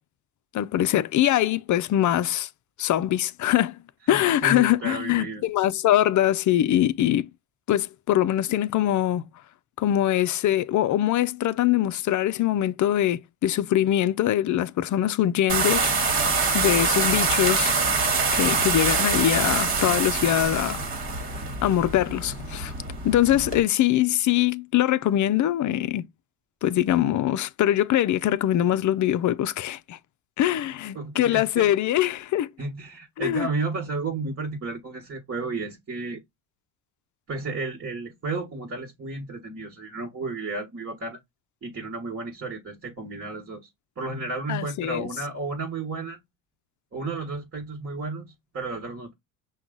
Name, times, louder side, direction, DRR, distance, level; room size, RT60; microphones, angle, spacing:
voice 1, 0.5-2.5 2.8-3.8 4.1-7.3 7.7-9.2 9.8-16.1 16.5-17.7 18.3-20.8 21.6-22.7 23.0-26.0 26.6-30.0 30.4-32.5 33.2-33.5 44.5-45.1, left 12 dB, 40° left, 0.5 m, -23 dB
voice 2, 4.1-5.4 30.9-31.7 32.6-36.2 37.3-41.2 41.6-43.7 44.0-46.2 46.9-48.3 48.5-49.1, right 3 dB, 30° right, 1.4 m, -32 dB
sound 1, 15.5-23.6, right 4 dB, 50° right, 1.5 m, -25 dB
5.9 x 2.4 x 3.8 m
supercardioid pair, 75°, 46 cm